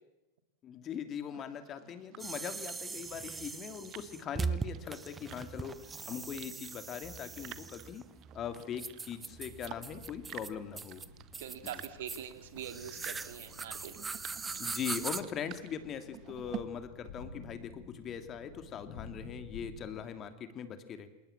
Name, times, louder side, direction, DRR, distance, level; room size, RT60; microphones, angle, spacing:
voice 1, 0.6-8.0 8.3-11.0 11.6-11.8 14.6-21.1, left 8 dB, 30° left, 9 dB, 2.8 m, -41 dB
sound 1, 1.3-16.6, right 15 dB, 35° right, 1.4 m, -52 dB
sound 2, 2.2-15.2, right 4 dB, 15° right, 1.4 m, -41 dB
sound 3, 9.2-20.0, left 4 dB, 50° left, 7.6 m, -53 dB
voice 2, 11.4-14.1, right 10 dB, 55° right, 9 dB, 2.7 m, -44 dB
28.5 x 28.0 x 7.5 m, 0.97 s
figure-of-eight pair, 90°, 0 cm